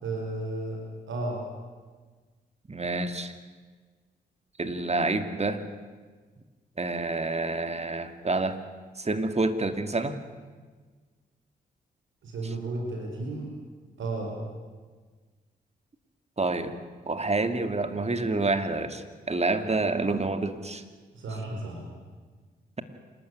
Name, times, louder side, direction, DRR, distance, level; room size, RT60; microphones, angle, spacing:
voice 1, 0.0-0.8 1.1-1.4 12.2-13.5 14.0-14.3 21.1-21.9, right 2 dB, 75° right, 1 dB, 4.7 m, -33 dB
voice 2, 2.7-3.3 4.6-5.6 6.8-8.6 9.0-10.2 16.4-16.7 17.1-20.8, right 3 dB, 35° right, 9 dB, 2.5 m, -28 dB
27.0 x 13.0 x 9.5 m, 1.4 s
supercardioid pair, 40°, 20 cm